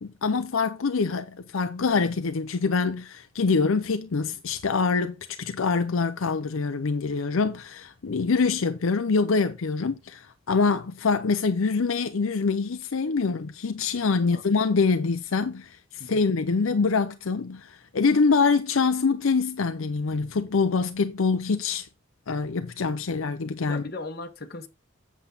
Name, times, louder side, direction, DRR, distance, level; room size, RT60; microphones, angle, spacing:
voice 1, 0.0-21.9 22.3-23.8, left 4 dB, 75° left, 0.6 m, -25 dB
voice 2, 23.7-24.7, left 3 dB, 45° left, 1.3 m, -38 dB
8.0 x 7.1 x 3.9 m
head